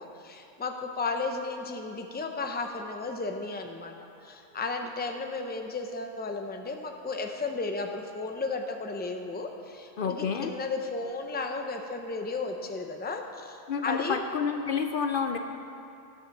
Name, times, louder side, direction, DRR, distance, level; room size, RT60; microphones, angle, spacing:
voice 1, 0.0-4.0 4.2-14.2, left 3 dB, 10° left, 4 dB, 0.6 m, -34 dB
voice 2, 10.0-10.5 13.7-15.4, left 6 dB, 60° left, 6 dB, 0.7 m, -29 dB
12.5 x 7.2 x 6.6 m, 2.7 s
omnidirectional pair, 1.1 m